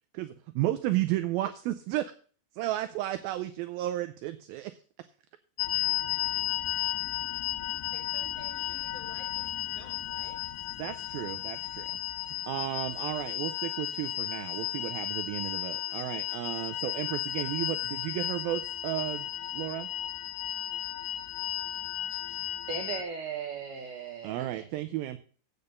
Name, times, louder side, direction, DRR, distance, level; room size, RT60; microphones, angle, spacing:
voice 1, 0.1-2.1 2.5-4.8 10.8-11.9 12.2-19.9 24.2-25.2, right 15 dB, 80° right, 10 dB, 2.2 m, -33 dB
sound 1, 5.6-23.0, left 13 dB, 80° left, 1.9 m, -34 dB
voice 2, 7.9-10.4, equal, 5° left, -3 dB, 5.1 m, -52 dB
voice 3, 22.7-24.7, right 6 dB, 65° right, 2 dB, 2.3 m, -37 dB
8.5 x 6.6 x 6.9 m, 0.42 s
omnidirectional pair, 4.7 m